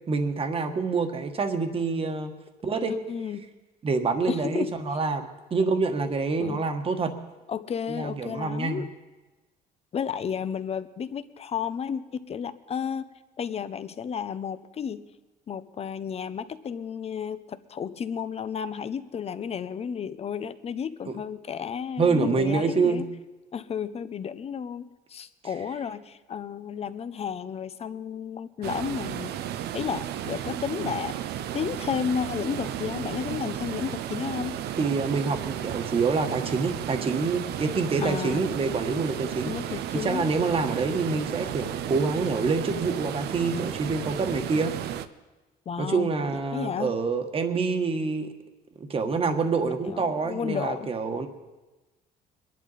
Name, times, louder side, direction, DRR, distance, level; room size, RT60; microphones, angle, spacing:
voice 1, 0.1-2.3 2.6-3.0 3.8-7.1 7.9-8.8 21.1-21.2 22.0-23.0 34.8-39.5 39.9-44.7 45.8-48.3 48.8-51.3, right 4 dB, 35° right, 6 dB, 1.5 m, -26 dB
voice 2, 2.9-3.5 4.3-4.7 6.4-6.6 7.5-8.9 9.9-13.1 13.4-15.0 15.5-23.1 23.5-29.4 29.7-31.1 31.5-34.6 38.0-38.4 39.4-40.3 45.7-46.9 49.8-50.9, left 7 dB, 40° left, 13 dB, 0.7 m, -32 dB
sound 1, 28.6-45.1, right 11 dB, 75° right, 0.7 m, -33 dB
23.0 x 11.0 x 4.2 m, 1.1 s
cardioid pair, 110°, 17 cm